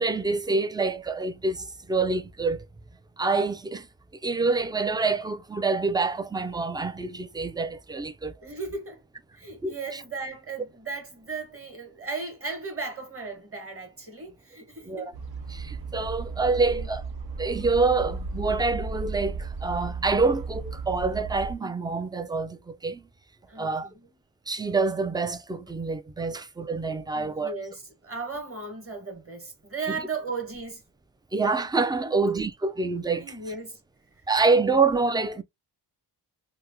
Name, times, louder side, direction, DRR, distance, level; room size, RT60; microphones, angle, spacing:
voice 1, 0.0-2.6 3.2-3.9 4.2-8.3 9.6-10.0 14.9-15.1 15.5-17.0 17.4-23.0 23.6-23.9 24.5-27.6 31.3-33.3 34.3-35.4, right 3 dB, 10° right, 0.3 m, -26 dB
voice 2, 8.4-9.0 9.3-15.1 16.3-16.9 23.5-24.2 27.1-30.8 32.0-32.2 33.2-33.8, right 4 dB, 30° right, 1.3 m, -36 dB
sound 1, 15.1-21.5, right 4 dB, 60° right, 0.8 m, -35 dB
2.9 x 2.1 x 3.5 m
cardioid pair, 80°, 43 cm